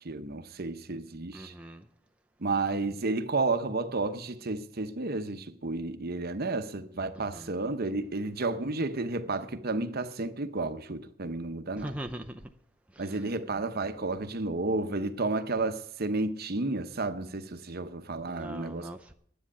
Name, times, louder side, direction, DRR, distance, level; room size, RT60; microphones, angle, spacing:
voice 1, 0.0-1.5 2.4-11.9 13.0-18.9, right 3 dB, 45° right, 0.8 m, -32 dB
voice 2, 1.3-1.8 7.3-7.5 11.8-12.4 18.3-19.1, right 1 dB, 5° right, 0.5 m, -40 dB
10.0 x 9.2 x 8.4 m
head